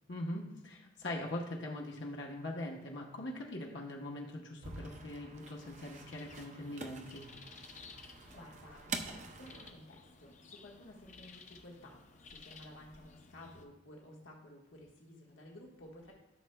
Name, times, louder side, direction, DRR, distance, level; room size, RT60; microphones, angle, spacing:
voice 1, 0.1-7.2, left 1 dB, 65° left, -1 dB, 1.0 m, -42 dB
sound 1, 4.6-9.7, right 4 dB, 35° right, 0.5 m, -46 dB
sound 2, 5.5-13.7, left 4 dB, 40° left, 0.6 m, -56 dB
voice 2, 8.3-12.0 12.3-16.1, left 1 dB, 90° left, -1 dB, 1.4 m, -54 dB
13.0 x 6.5 x 2.2 m, 1.0 s
head